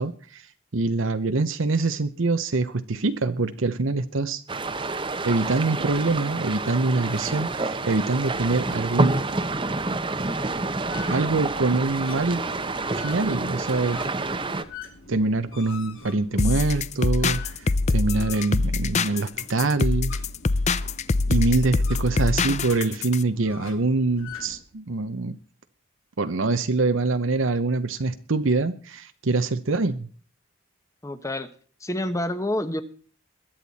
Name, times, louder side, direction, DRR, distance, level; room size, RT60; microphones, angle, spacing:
voice 1, 0.0-4.4 5.2-9.2 11.1-12.4 12.9-14.0 15.1-20.1 21.3-25.4 26.2-30.1, right 3 dB, 75° right, 9 dB, 0.8 m, -24 dB
sound 1, 4.5-14.6, right 2 dB, 25° right, 0.9 m, -28 dB
sound 2, 10.4-24.6, left 5 dB, 80° left, 3.0 m, -45 dB
sound 3, 16.4-23.2, left 3 dB, 35° left, 0.5 m, -24 dB
voice 2, 31.0-31.5 31.8-32.8, left 1 dB, 15° left, 11 dB, 1.1 m, -28 dB
22.0 x 9.0 x 4.2 m, 0.43 s
head